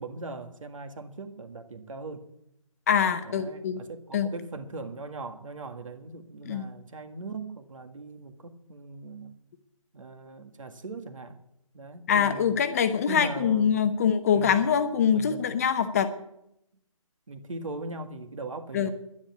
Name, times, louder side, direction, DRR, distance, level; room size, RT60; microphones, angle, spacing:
voice 1, 0.0-2.3 3.2-9.4 9.9-11.4 11.7-12.6 13.1-13.9 14.3-14.7 15.1-15.4 17.3-18.9, right 3 dB, 65° right, 1.8 m, -40 dB
voice 2, 2.9-3.8 4.1-4.3 6.5-6.7 12.1-16.1 18.7-18.9, left 7 dB, 25° left, 0.8 m, -24 dB
11.0 x 9.8 x 8.4 m
figure-of-eight pair, 155°, 18 cm